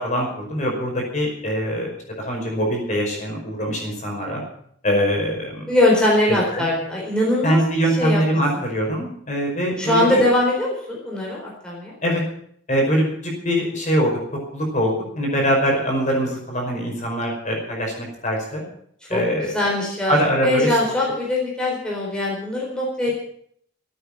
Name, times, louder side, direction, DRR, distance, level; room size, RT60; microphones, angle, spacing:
voice 1, 0.0-1.9 2.2-4.4 4.8-5.7 6.3-6.6 7.4-10.2 12.0-12.2 12.7-14.1 14.5-18.6 19.1-19.5 20.1-20.8, equal, 35° left, 0 dB, 5.1 m, -23 dB
voice 2, 5.7-7.6 8.0-8.2 9.8-11.9 19.1-20.1 20.4-23.1, left 1 dB, 5° left, -4 dB, 4.1 m, -21 dB
14.5 x 9.3 x 8.8 m, 0.65 s
head